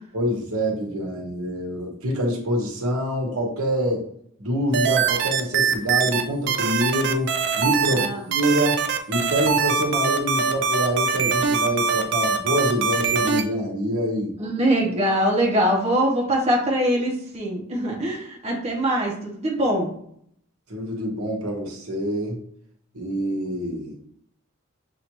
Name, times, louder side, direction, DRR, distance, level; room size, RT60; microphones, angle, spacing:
voice 1, 0.1-4.0 4.4-7.3 7.6-8.8 9.1-14.3 20.7-22.4 22.9-23.9, equal, 80° right, -1 dB, 1.2 m, -25 dB
sound 1, 4.7-6.2 6.5-8.1 8.3-13.4, right 6 dB, 50° right, 0.4 m, -22 dB
voice 2, 7.9-8.2 14.4-19.9, right 1 dB, 30° right, -2 dB, 0.8 m, -23 dB
6.6 x 2.5 x 3.0 m, 0.68 s
head